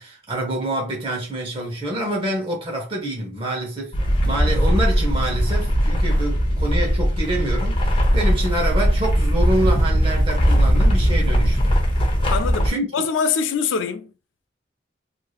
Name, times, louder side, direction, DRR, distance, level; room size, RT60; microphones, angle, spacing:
voice 1, 0.0-4.0 4.2-11.7 12.6-12.9, right 1 dB, 30° right, 0.9 m, -26 dB
sound 1, 3.9-12.7, equal, 25° left, 0.7 m, -19 dB
voice 2, 12.3-14.1, left 5 dB, 85° left, 0.4 m, -24 dB
3.2 x 2.7 x 2.3 m
head